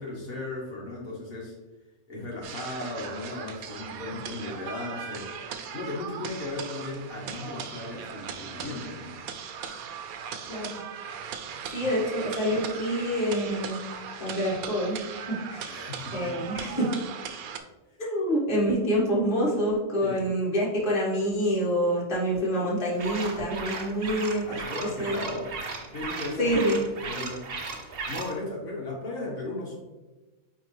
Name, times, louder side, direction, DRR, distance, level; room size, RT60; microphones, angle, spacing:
voice 1, 0.0-1.5 2.1-5.3 5.7-9.2 11.8-11.9 15.7-16.6 20.0-20.3 24.4-25.5 25.9-26.5 27.0-29.8, left 2 dB, 70° left, -4 dB, 1.7 m, -36 dB
sound 1, 2.4-17.6, right 7 dB, 80° right, 1.1 m, -39 dB
voice 2, 10.5-10.8 11.7-13.8 14.2-15.8 16.1-17.0 18.0-24.6 25.0-25.2 26.4-26.8, equal, 35° left, -5 dB, 1.7 m, -27 dB
sound 2, 23.0-28.3, right 4 dB, 50° right, 0.9 m, -36 dB
9.1 x 3.4 x 3.2 m, 1.1 s
omnidirectional pair, 1.5 m